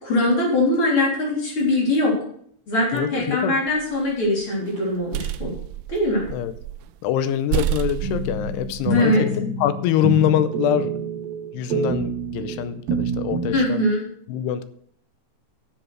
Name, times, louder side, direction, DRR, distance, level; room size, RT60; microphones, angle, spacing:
voice 1, 0.0-2.2 2.7-5.5 5.9-6.3 8.9-9.2 13.5-14.1, left 1 dB, 35° left, -3 dB, 4.0 m, -21 dB
voice 2, 2.9-3.6 6.3-6.5 7.0-11.0 11.5-13.9 14.3-14.6, left 11 dB, 85° left, 12 dB, 2.8 m, -24 dB
sound 1, 3.7-4.3 4.8-6.9 7.2-7.3 7.5-9.0, right 13 dB, 85° right, 2.2 m, -29 dB
sound 2, 8.0-13.6, right 2 dB, 65° right, 3.3 m, -27 dB
10.0 x 7.3 x 6.1 m, 0.64 s
omnidirectional pair, 4.7 m